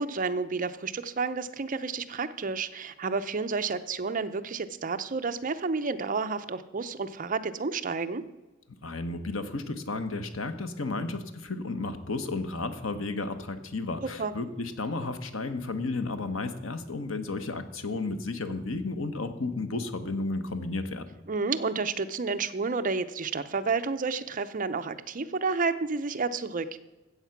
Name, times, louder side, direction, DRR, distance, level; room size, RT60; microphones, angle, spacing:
voice 1, 0.0-8.2 14.2-14.3 21.3-26.8, right 4 dB, 40° right, 10 dB, 0.7 m, -30 dB
voice 2, 8.7-21.1, left 3 dB, 80° left, 9 dB, 1.2 m, -33 dB
14.5 x 8.1 x 5.9 m, 1.1 s
head